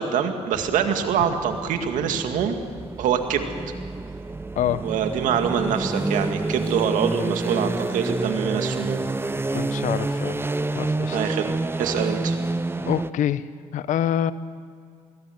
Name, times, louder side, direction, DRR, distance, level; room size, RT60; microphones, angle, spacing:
voice 1, 0.0-2.6 3.0-3.5 4.8-9.1 11.1-11.5 11.8-12.4, right 8 dB, 80° right, 6 dB, 2.1 m, -24 dB
sound 1, 0.5-13.1, right 2 dB, 15° right, 0.8 m, -28 dB
voice 2, 9.5-10.4 10.7-11.2 12.9-13.5 13.7-14.3, left 10 dB, 75° left, 15 dB, 0.9 m, -25 dB
21.5 x 20.0 x 8.0 m, 2.2 s
supercardioid pair, 65°, 13 cm